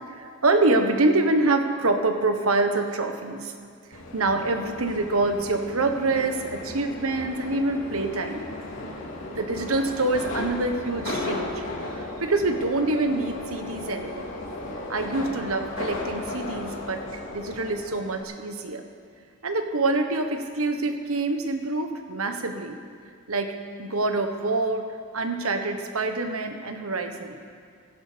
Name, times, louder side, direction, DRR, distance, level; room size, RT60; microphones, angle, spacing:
voice 1, 0.1-3.5 3.9-8.5 9.3-11.6 12.0-14.3 14.9-17.0 17.3-18.8 19.4-22.8 23.3-27.4, right 2 dB, 70° right, 6 dB, 1.3 m, -26 dB
Subway metro underground, 3.9-18.2, left 2 dB, 65° left, 2.9 m, -35 dB
16.5 x 16.0 x 5.2 m, 2.2 s
head